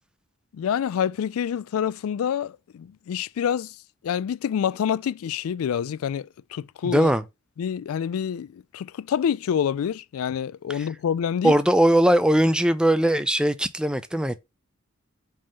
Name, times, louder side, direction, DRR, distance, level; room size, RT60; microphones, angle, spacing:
voice 1, 0.5-3.8 4.0-7.1 7.6-11.5, left 8 dB, 90° left, 0.3 m, -27 dB
voice 2, 6.8-7.2 11.4-14.4, right 1 dB, 5° right, 0.4 m, -20 dB
5.4 x 3.5 x 5.2 m
head